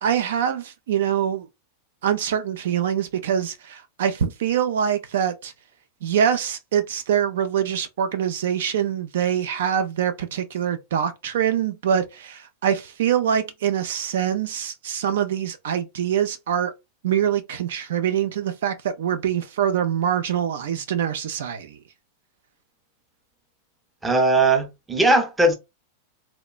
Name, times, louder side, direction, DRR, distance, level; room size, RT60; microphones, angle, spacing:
voice 1, 0.0-1.5 2.0-5.5 6.0-16.7 17.0-21.8, right 9 dB, 80° right, 0.4 m, -24 dB
voice 2, 24.0-25.6, right 2 dB, 10° right, 0.5 m, -19 dB
2.9 x 2.1 x 2.3 m
supercardioid pair, 145°, 0 cm